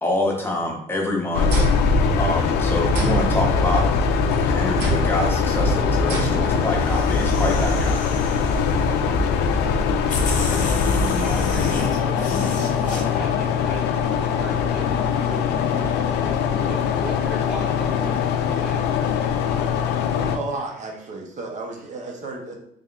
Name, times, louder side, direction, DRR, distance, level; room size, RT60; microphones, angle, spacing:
voice 1, 0.0-1.7 2.1-3.8 4.3-8.0, left 2 dB, 15° left, -1 dB, 0.9 m, -26 dB
sound 1, 1.3-20.4, left 5 dB, 75° left, 0.4 m, -22 dB
sound 2, 1.5-2.6 2.9-4.2 4.8-5.3 6.1-6.7, right 2 dB, 80° right, 1.0 m, -28 dB
sound 3, 6.7-9.0 9.7-9.8 10.1-13.0, left 3 dB, 50° left, 0.8 m, -31 dB
voice 2, 11.1-13.9 14.4-18.8 20.5-20.7 21.8-21.9, equal, 5° right, -2 dB, 0.5 m, -36 dB
voice 3, 20.1-22.6, right 2 dB, 45° right, 2 dB, 0.7 m, -33 dB
3.5 x 3.4 x 2.4 m, 0.78 s
cardioid pair, 110°, 17 cm